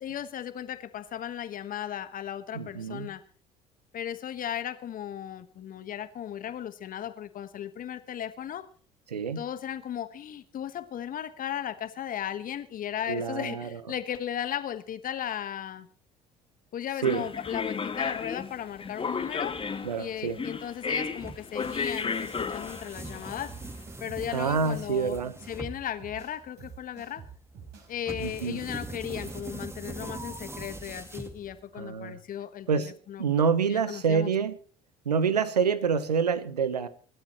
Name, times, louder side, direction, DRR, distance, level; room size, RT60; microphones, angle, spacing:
voice 1, 0.0-3.2 3.9-8.7 9.4-15.9 16.7-19.6 20.0-23.6 24.0-27.2 27.9-33.2 33.7-34.3, left 10 dB, 45° left, 1.5 m, -36 dB
voice 2, 2.5-3.1 9.1-9.4 13.1-13.8 17.0-17.3 19.8-20.4 24.3-25.3 28.2-28.6 31.7-32.2 32.7-32.9 33.2-34.6 35.0-36.9, right 6 dB, 85° right, 1.1 m, -27 dB
sound 1, 17.0-23.7, left 5 dB, 25° left, 2.0 m, -33 dB
sound 2, 21.2-31.8, right 2 dB, 10° right, 2.1 m, -42 dB
sound 3, 23.5-29.5, right 6 dB, 55° right, 6.0 m, -48 dB
25.0 x 12.5 x 3.1 m
figure-of-eight pair, 60°, 20 cm